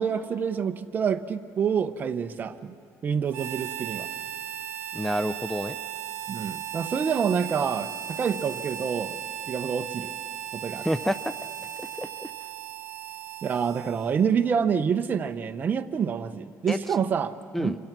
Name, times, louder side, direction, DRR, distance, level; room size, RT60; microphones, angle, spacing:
voice 1, 0.0-2.7 3.0-4.1 6.3-9.2 9.5-10.1 10.5-10.9 13.4-17.8, right 7 dB, 30° right, 8 dB, 0.9 m, -27 dB
Harmonica, 3.3-14.4, right 12 dB, 75° right, 1.5 m, -37 dB
voice 2, 4.9-5.8 10.8-11.3 11.8-12.3 16.7-16.8 17.5-17.8, equal, 5° left, 12 dB, 0.5 m, -28 dB
27.0 x 24.5 x 6.0 m, 2.3 s
cardioid pair, 140°, 6 cm